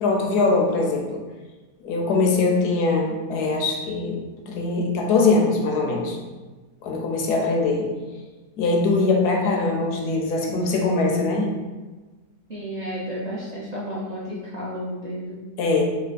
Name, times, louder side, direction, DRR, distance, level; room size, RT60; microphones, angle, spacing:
voice 1, 0.0-1.2 1.8-4.2 4.5-6.2 6.8-7.9 8.6-11.5 15.6-15.8, left 3 dB, 80° left, 1 dB, 1.2 m, -22 dB
voice 2, 12.5-15.4, equal, 45° right, -7 dB, 0.5 m, -32 dB
3.2 x 2.9 x 4.0 m, 1.3 s
omnidirectional pair, 1.7 m